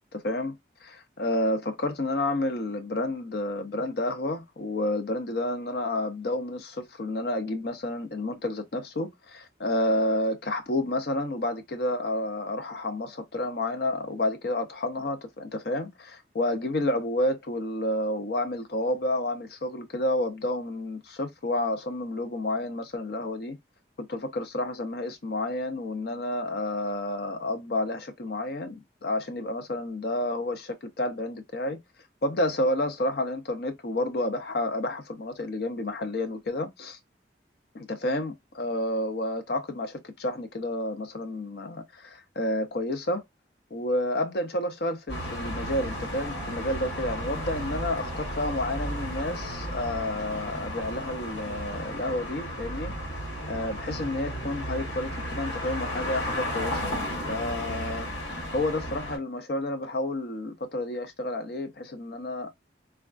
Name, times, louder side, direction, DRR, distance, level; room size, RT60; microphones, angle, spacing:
voice 1, 0.1-0.6 0.8-23.6 24.0-31.8 32.2-37.0 37.7-43.2 43.7-52.9 53.5-57.0 57.3-58.1 58.5-62.5, left 1 dB, 55° left, 0.6 m, -30 dB
sound 1, 45.1-59.2, equal, 75° left, 1.3 m, -34 dB
3.5 x 2.3 x 2.3 m
head